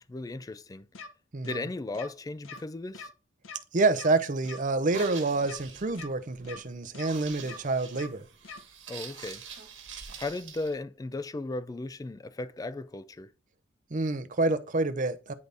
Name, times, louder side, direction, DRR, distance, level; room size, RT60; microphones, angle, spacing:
voice 1, 0.1-0.9 1.5-3.1 8.9-9.4 10.2-13.3, left 2 dB, 20° left, 0.3 m, -36 dB
sound 1, 0.9-1.1 1.4-1.6 1.9-2.1 2.4-2.6 2.9-3.1 3.4-3.6 3.9-4.1 4.4-4.6 4.9-5.1 5.4-5.6 5.9-6.1 6.4-6.6 6.9-7.1 7.4-7.6 7.9-8.1 8.4-8.6, left 4 dB, 85° left, 0.8 m, -42 dB
voice 2, 1.3-1.7 3.7-8.2 13.9-15.3, right 3 dB, 40° right, 0.6 m, -28 dB
sound 2, 4.7-10.7, right 7 dB, 65° right, 1.3 m, -45 dB
9.5 x 3.9 x 3.4 m
head